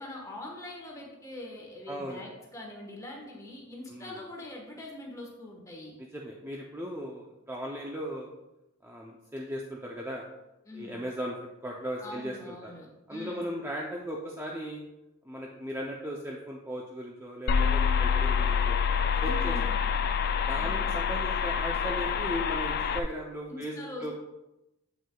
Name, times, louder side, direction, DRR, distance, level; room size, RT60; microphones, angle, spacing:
voice 1, 0.0-5.9 10.7-11.0 12.0-13.5 19.2-19.8 20.5-21.0 23.5-24.2, left 1 dB, 15° left, -1 dB, 1.2 m, -43 dB
voice 2, 1.9-2.2 3.9-4.2 6.1-8.3 8.8-10.2 10.7-11.4 11.6-12.7 13.1-14.8 15.2-18.8 19.2-19.6 20.4-24.2, equal, 10° right, -1 dB, 0.5 m, -37 dB
sound 1, 17.5-23.0, left 6 dB, 45° left, 0.3 m, -27 dB
7.4 x 6.1 x 2.3 m, 0.95 s
head